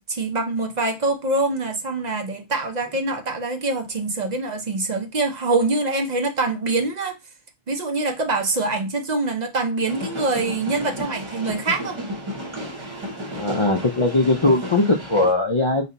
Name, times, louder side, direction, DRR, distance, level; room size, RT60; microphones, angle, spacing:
voice 1, 0.0-7.2 7.7-12.0, right 3 dB, 50° right, 0.6 m, -24 dB
sound 1, 9.9-15.3, equal, 30° right, 0.9 m, -33 dB
voice 2, 13.4-15.9, left 2 dB, 45° left, 0.4 m, -20 dB
4.1 x 2.2 x 3.9 m
omnidirectional pair, 1.0 m